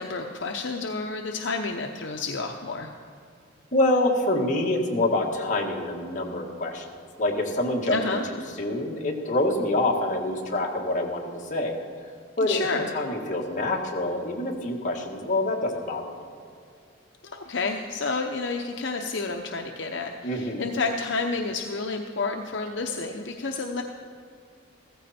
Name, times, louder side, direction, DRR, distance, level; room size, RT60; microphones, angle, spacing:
voice 1, 0.0-2.9 7.9-8.2 12.4-12.9 17.2-23.8, left 3 dB, 70° left, 3 dB, 0.8 m, -30 dB
voice 2, 3.7-6.9 7.2-11.8 12.4-12.6 12.9-16.3 20.2-20.6, left 1 dB, 40° left, -1 dB, 1.9 m, -26 dB
15.0 x 14.5 x 4.3 m, 2.3 s
head